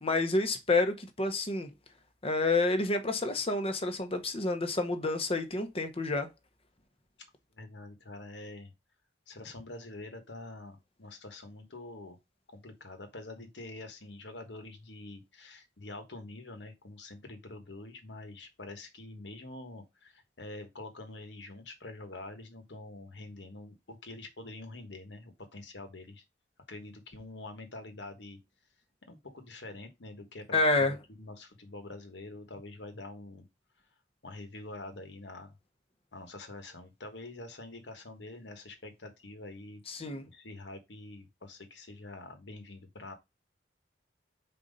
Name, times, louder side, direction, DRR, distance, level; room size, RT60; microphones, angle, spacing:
voice 1, 0.0-1.7 2.2-6.3 30.5-30.9 39.9-40.2, left 2 dB, 30° left, 1.0 m, -29 dB
voice 2, 7.5-8.7 9.3-12.2 12.5-26.2 26.7-28.4 29.1-33.5 34.2-35.5 36.1-43.1, left 2 dB, 70° left, 1.3 m, -46 dB
4.4 x 4.1 x 5.2 m
head